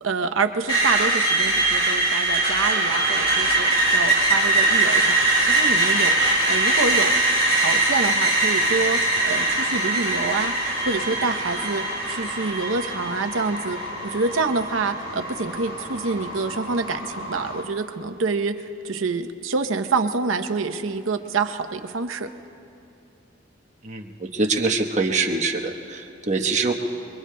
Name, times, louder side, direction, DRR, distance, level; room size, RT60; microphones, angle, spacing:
voice 1, 0.0-3.7 3.9-6.2 6.5-7.1 7.5-10.5 10.8-22.3, right 4 dB, 75° right, 7 dB, 0.8 m, -27 dB
Screech, 0.7-14.6, right 2 dB, 30° left, 4.1 m, -21 dB
sound 1, 2.9-17.6, left 2 dB, 80° left, 5.1 m, -35 dB
voice 2, 23.8-26.7, right 3 dB, 35° right, 2 dB, 1.0 m, -24 dB
29.0 x 22.5 x 2.2 m, 2.7 s
head